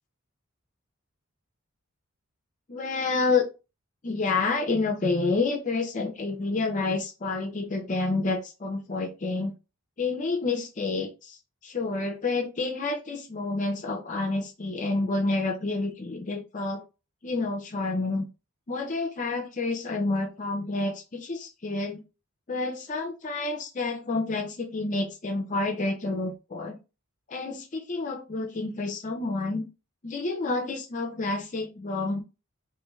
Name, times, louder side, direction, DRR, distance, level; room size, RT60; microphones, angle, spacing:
voice 1, 2.7-3.5 4.0-9.5 10.0-11.4 11.6-16.8 17.2-18.2 18.7-22.0 22.5-26.8 27.3-29.6 30.0-32.2, left 3 dB, 35° left, 0.5 m, -29 dB
3.1 x 3.0 x 2.3 m
head